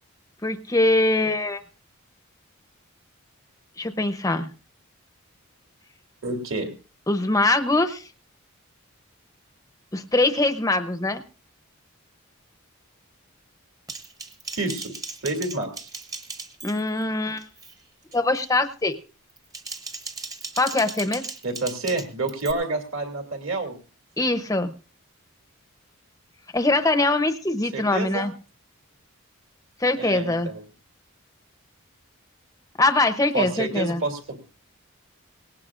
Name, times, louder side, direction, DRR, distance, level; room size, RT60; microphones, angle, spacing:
voice 1, 0.4-1.6 3.8-4.5 7.1-8.1 9.9-11.2 16.6-17.4 18.1-19.0 20.6-21.2 24.2-24.7 26.5-28.3 29.8-30.5 32.8-34.0, left 2 dB, 15° left, 9 dB, 0.7 m, -22 dB
voice 2, 6.2-6.7 14.6-14.9 15.2-15.9 21.4-23.8 27.7-28.3 30.0-30.6 33.3-34.4, right 2 dB, 65° right, 3 dB, 2.6 m, -28 dB
Typing, 13.9-17.0 17.4-17.7 18.1-18.5 19.3-22.5, right 4 dB, 15° right, 0.9 m, -37 dB
18.5 x 18.0 x 2.5 m, 0.35 s
head